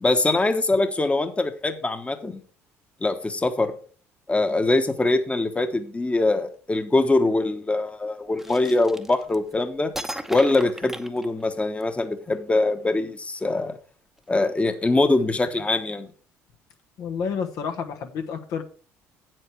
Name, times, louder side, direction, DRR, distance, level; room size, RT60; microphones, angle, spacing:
voice 1, 0.0-2.4 3.0-3.7 4.3-9.9 10.3-13.8 14.3-16.1, left 2 dB, 20° left, 8 dB, 1.2 m, -23 dB
sound 1, 8.4-9.5 9.9-11.8, right 1 dB, 5° right, 0.9 m, -36 dB
voice 2, 17.0-18.6, left 6 dB, 65° left, 5 dB, 1.2 m, -29 dB
7.9 x 7.7 x 4.6 m, 0.41 s
hypercardioid pair, 65°, 7 cm